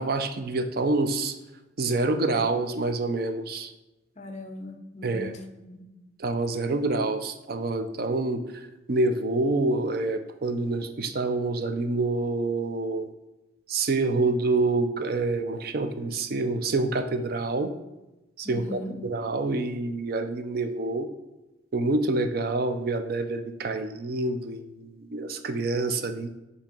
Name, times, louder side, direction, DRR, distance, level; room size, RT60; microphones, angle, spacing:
voice 1, 0.0-1.3 1.8-3.7 5.0-5.3 6.2-8.4 8.9-13.1 13.7-17.7 18.4-21.1 21.7-26.3, right 2 dB, 50° right, 9 dB, 0.4 m, -27 dB
voice 2, 4.2-5.8 18.4-19.0, left 1 dB, 35° left, 5 dB, 0.6 m, -39 dB
7.2 x 2.8 x 5.2 m, 0.99 s
head